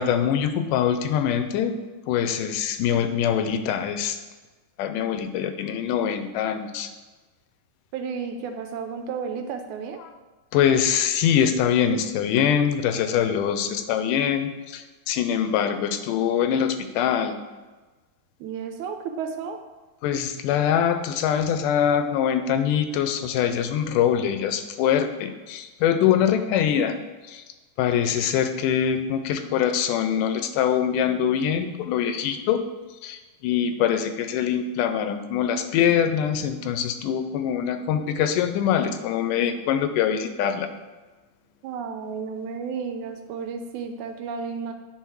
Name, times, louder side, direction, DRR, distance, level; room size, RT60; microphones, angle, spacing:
voice 1, 0.0-1.8 2.1-4.2 4.8-6.9 10.5-17.4 20.0-27.0 27.3-27.4 27.8-32.6 33.0-40.7, left 8 dB, 90° left, 9 dB, 2.2 m, -23 dB
voice 2, 7.9-10.0 18.4-19.6 41.6-44.7, right 6 dB, 80° right, 6 dB, 1.9 m, -32 dB
9.1 x 4.8 x 4.7 m, 1.2 s
omnidirectional pair, 3.6 m